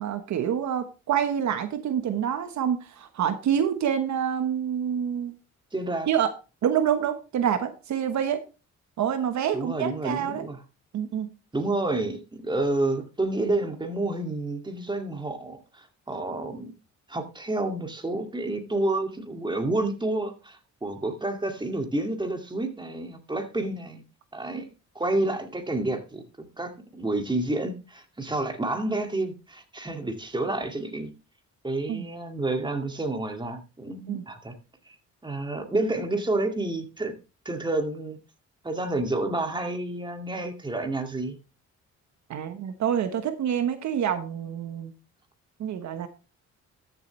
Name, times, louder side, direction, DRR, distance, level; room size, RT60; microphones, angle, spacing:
voice 1, 0.0-5.3 6.1-6.3 6.6-8.4 9.0-10.5 10.9-11.3 31.9-32.1 34.1-34.2 42.3-44.9 45.6-46.1, right 9 dB, 70° right, 1.2 m, -27 dB
voice 2, 5.7-6.1 9.5-10.6 11.5-16.7 17.1-24.0 24.3-24.7 24.9-31.1 31.6-34.5 34.9-35.0 35.2-37.1 37.5-38.2 38.6-41.4, right 2 dB, 15° right, 2.2 m, -29 dB
13.0 x 7.5 x 3.2 m
cardioid pair, 90°, 30 cm